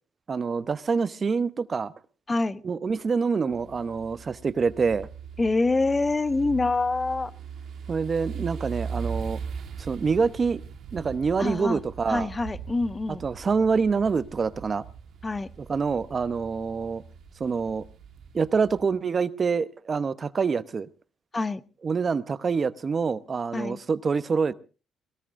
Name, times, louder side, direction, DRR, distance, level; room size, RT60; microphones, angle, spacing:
voice 1, 0.3-1.9 2.6-5.1 7.9-9.4 9.8-10.6 10.9-12.3 13.2-14.8 15.6-17.0 17.4-17.8 18.3-20.9 21.8-24.5, right 5 dB, 40° right, 0.8 m, -26 dB
voice 2, 2.3-2.6 5.4-7.3 11.4-11.8 12.1-13.2 15.2-15.5 21.3-21.6 23.5-23.8, left 3 dB, 25° left, 0.8 m, -25 dB
sound 1, 3.5-18.9, right 6 dB, 70° right, 1.4 m, -40 dB
21.5 x 18.0 x 2.6 m
cardioid pair, 90°, 0 cm